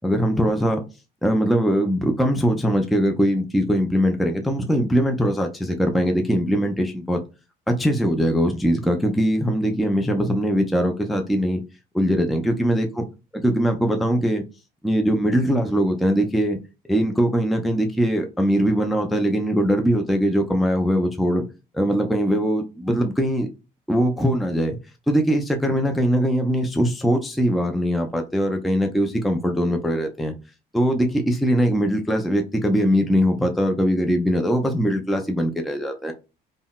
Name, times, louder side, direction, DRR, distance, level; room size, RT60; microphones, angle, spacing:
voice 1, 0.0-0.8 1.2-7.2 7.7-11.6 11.9-13.1 13.4-14.4 14.8-16.6 16.9-21.4 21.7-23.5 23.9-24.8 25.1-30.3 30.7-36.1, equal, ahead, 0.3 m, -21 dB
3.7 x 2.0 x 2.2 m
cardioid pair, 110°, 17 cm